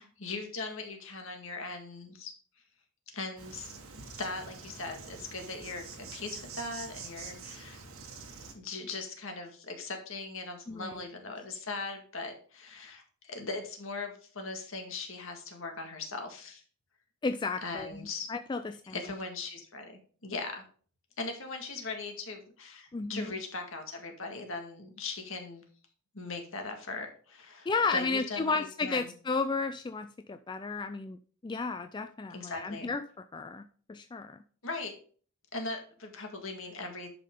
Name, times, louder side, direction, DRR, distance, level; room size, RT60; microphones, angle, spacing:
voice 1, 0.0-2.3 3.1-3.7 4.1-7.8 8.5-16.6 17.6-18.3 18.9-20.6 21.2-25.6 26.1-29.1 32.3-32.9 34.6-34.9 35.5-37.1, left 3 dB, 60° left, 4 dB, 1.9 m, -39 dB
Insect, 3.4-8.5, right 4 dB, 70° right, 1.5 m, -46 dB
voice 2, 10.7-11.0 17.2-18.9 22.9-23.3 27.7-33.0 33.3-34.4, left 4 dB, 20° left, 9 dB, 0.3 m, -33 dB
10.5 x 5.6 x 3.7 m, 0.43 s
head